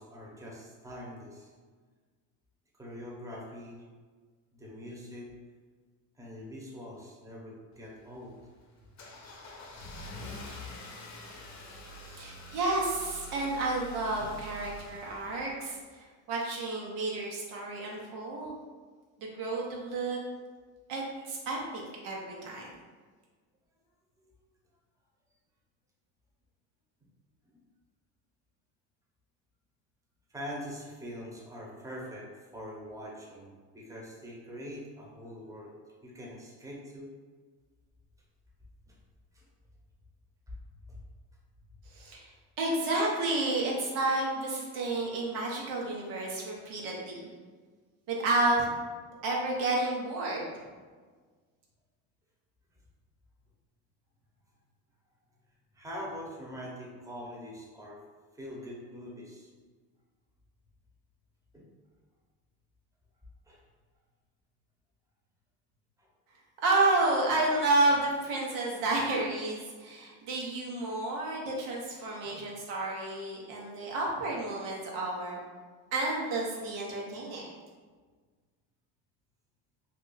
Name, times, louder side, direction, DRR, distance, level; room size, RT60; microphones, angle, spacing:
voice 1, 0.0-1.5 2.7-3.8 4.5-5.3 6.2-8.3 14.2-14.3 24.2-24.3 27.5-27.6 30.3-35.7 36.0-37.1 38.9-39.0 39.3-39.4 40.9-41.0 55.7-58.0 58.3-59.5 61.5-61.6 63.5-63.6 66.0-66.1 72.2-72.4, equal, 5° right, -3 dB, 0.8 m, -43 dB
Car / Engine starting, 7.7-15.9, equal, 35° left, 0.7 m, -46 dB
voice 2, 12.0-18.6 19.2-20.2 20.9-22.7 41.9-42.3 42.6-47.3 48.1-48.7 49.2-50.5 66.6-75.4 75.9-77.5, right 2 dB, 75° right, -2 dB, 1.0 m, -31 dB
2.7 x 2.4 x 3.9 m, 1.5 s
supercardioid pair, 85°, 50 cm